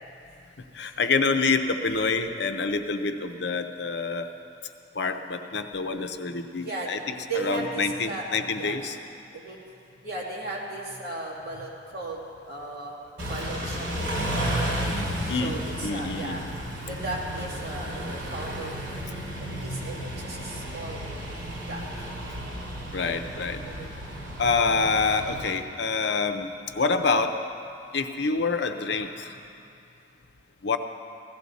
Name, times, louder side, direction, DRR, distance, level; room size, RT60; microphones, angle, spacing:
voice 1, 0.7-4.3 5.0-7.0 7.3-9.0 15.3-15.6 15.8-16.4 19.6-19.9 22.9-23.6 24.4-27.4 27.9-29.4 30.6-30.8, left 4 dB, 65° left, 7 dB, 0.6 m, -27 dB
voice 2, 6.6-7.0 7.2-8.3 8.6-8.8 9.3-9.6 10.0-14.2 15.2-16.4 16.9-18.8 19.6-21.1 21.6-22.1 23.6-23.9, right 2 dB, 55° right, -4 dB, 2.5 m, -36 dB
Car / Idling / Accelerating revving vroom, 13.2-25.5, right 1 dB, 85° right, 2.7 m, -33 dB
16.0 x 13.5 x 4.1 m, 2.5 s
head